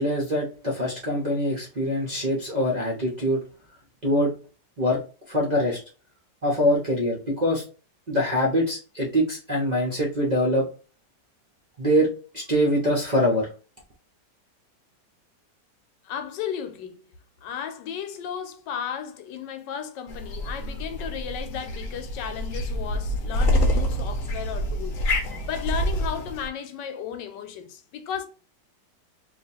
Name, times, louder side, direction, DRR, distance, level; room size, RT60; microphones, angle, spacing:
voice 1, 0.0-3.4 4.0-4.3 4.8-5.0 5.3-5.8 6.4-7.6 8.1-10.6 11.8-12.1 12.3-13.5, equal, 45° right, 0.5 m, -23 dB
voice 2, 16.0-17.0 17.4-25.0 25.5-28.3, left 8 dB, 85° left, 1.3 m, -34 dB
sound 1, 20.1-26.5, equal, 65° left, 0.9 m, -27 dB
2.9 x 2.4 x 4.1 m
omnidirectional pair, 1.9 m